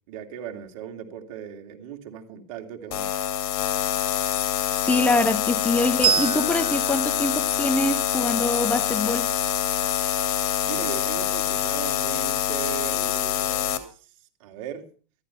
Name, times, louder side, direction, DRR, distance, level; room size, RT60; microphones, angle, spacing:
voice 1, 0.1-3.1 10.7-14.1 14.4-14.9, right 10 dB, 60° right, 2.8 m, -37 dB
sound 1, 2.9-13.8, left 10 dB, 60° left, 2.3 m, -25 dB
voice 2, 4.8-9.3, left 2 dB, 10° left, 0.9 m, -24 dB
Bell, 6.0-9.1, right 9 dB, 30° right, 1.9 m, -29 dB
13.5 x 12.0 x 5.7 m
hypercardioid pair, 115°, 19 cm